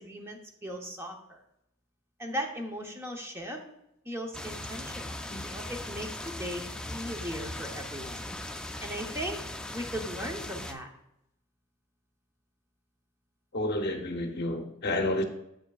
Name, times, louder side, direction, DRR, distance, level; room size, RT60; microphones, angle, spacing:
voice 1, 0.0-1.4 2.2-3.6 4.0-5.2 5.4-8.2 8.8-9.4 9.7-10.9, equal, 10° right, 2 dB, 0.8 m, -38 dB
sound 1, 4.3-10.7, left 1 dB, 5° left, 0.3 m, -39 dB
voice 2, 13.5-15.2, left 1 dB, 50° left, 5 dB, 0.7 m, -30 dB
7.7 x 7.1 x 2.3 m, 0.80 s
head